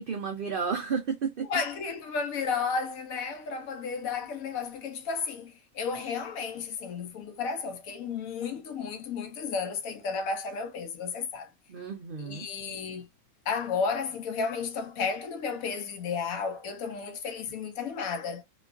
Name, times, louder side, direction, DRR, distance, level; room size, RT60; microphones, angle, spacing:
voice 1, 0.0-1.5 11.7-12.5, right 6 dB, 75° right, 0.5 m, -32 dB
voice 2, 1.5-11.5 12.2-13.1 13.5-18.4, left 5 dB, 75° left, 1.1 m, -33 dB
3.0 x 2.3 x 2.4 m
omnidirectional pair, 1.5 m